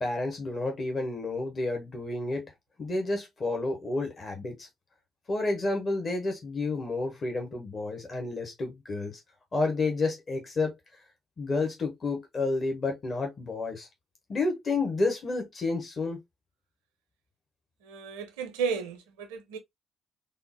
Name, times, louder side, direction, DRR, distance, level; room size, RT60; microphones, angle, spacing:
voice 1, 0.0-2.5 2.8-4.7 5.3-9.2 9.5-10.7 11.4-13.9 14.3-16.2, left 3 dB, 40° left, 0.9 m, -30 dB
voice 2, 17.8-19.6, right 6 dB, 80° right, 0.5 m, -33 dB
3.5 x 2.0 x 2.7 m
figure-of-eight pair, 45°, 0 cm